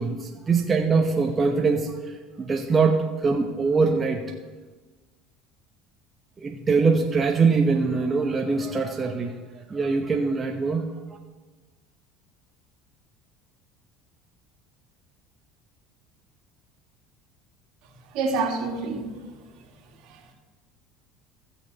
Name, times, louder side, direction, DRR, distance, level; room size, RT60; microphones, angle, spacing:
voice 1, 0.0-4.3 6.4-10.9, right 4 dB, 25° right, 1 dB, 1.0 m, -23 dB
voice 2, 18.1-19.3 20.0-20.2, right 3 dB, 65° right, 1 dB, 2.2 m, -28 dB
14.5 x 7.1 x 4.1 m, 1.3 s
supercardioid pair, 100°, 0 cm